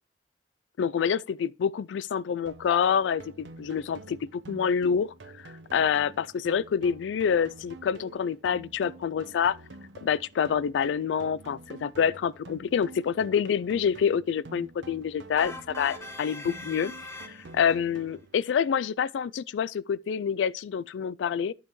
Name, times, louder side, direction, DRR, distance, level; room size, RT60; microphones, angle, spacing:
voice 1, 0.8-5.1 5.4-9.6 10.0-16.9 17.5-21.5, left 7 dB, 85° left, 0.3 m, -27 dB
sound 1, 2.5-18.5, right 3 dB, 85° right, 0.8 m, -48 dB
sound 2, 15.4-17.8, left 2 dB, 15° left, 1.1 m, -41 dB
11.5 x 5.5 x 3.1 m
head